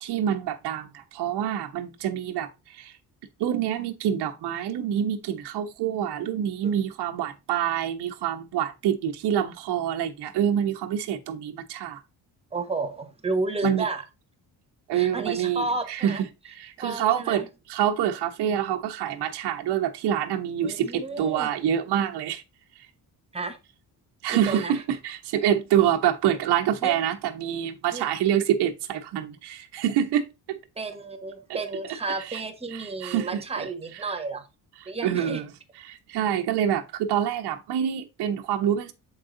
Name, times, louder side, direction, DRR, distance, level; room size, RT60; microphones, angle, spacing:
voice 1, 0.0-3.0 3.4-12.0 13.6-13.9 14.9-22.4 24.2-30.6 32.1-32.4 32.7-33.7 34.8-35.5 35.8-38.9, right 10 dB, 80° right, 1.1 m, -26 dB
voice 2, 12.5-14.0 14.9-16.2 16.8-17.5 20.6-21.5 23.3-23.6 24.3-24.8 26.8-26.9 27.9-28.1 30.8-34.4 34.9-35.4, right 3 dB, 15° right, 1.1 m, -32 dB
7.5 x 4.8 x 3.8 m
cardioid pair, 145°, 39 cm